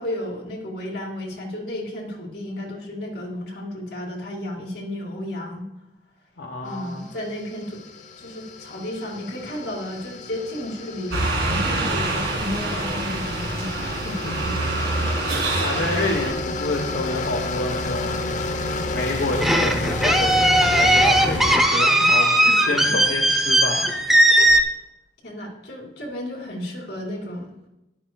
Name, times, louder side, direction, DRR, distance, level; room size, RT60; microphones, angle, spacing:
voice 1, 0.0-5.7 6.6-7.8 8.2-14.2 25.2-27.7, left 1 dB, 65° left, 0 dB, 2.7 m, -33 dB
voice 2, 6.4-7.1 14.2-14.6 15.6-23.9 24.4-24.6, left 2 dB, 80° left, 1 dB, 1.1 m, -29 dB
sound 1, 6.9-21.6, left 2 dB, 45° left, 0.8 m, -31 dB
sound 2, 11.1-16.3, right 2 dB, 70° right, 2.1 m, -25 dB
sound 3, 19.4-24.6, right 1 dB, ahead, 0.6 m, -18 dB
12.5 x 11.0 x 2.3 m, 0.93 s
head